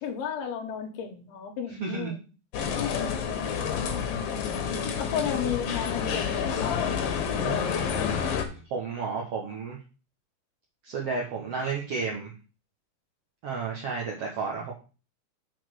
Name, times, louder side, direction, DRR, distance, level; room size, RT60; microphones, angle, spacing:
voice 1, 0.0-2.2 2.7-3.0 3.9-4.0 5.0-6.9 7.4-8.4, left 8 dB, 85° left, 2 dB, 3.2 m, -34 dB
voice 2, 1.8-2.2 7.3-7.8 8.5-9.8 10.8-12.3 13.4-14.7, right 5 dB, 65° right, -2 dB, 1.6 m, -32 dB
sound 1, 2.5-8.4, left 7 dB, 70° left, 2.5 m, -29 dB
7.2 x 4.2 x 6.3 m, 0.34 s
omnidirectional pair, 4.5 m